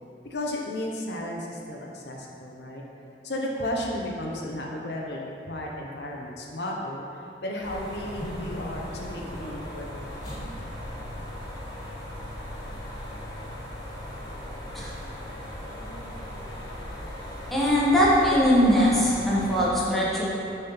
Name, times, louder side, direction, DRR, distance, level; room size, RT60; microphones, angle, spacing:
voice 1, 0.3-2.8 3.2-7.0 7.4-10.1, left 1 dB, 70° left, -1 dB, 0.9 m, -33 dB
sound 1, 7.6-19.7, equal, 20° left, 1.5 m, -38 dB
voice 2, 17.5-20.3, equal, ahead, -8 dB, 1.2 m, -21 dB
6.8 x 4.3 x 5.6 m, 2.8 s
head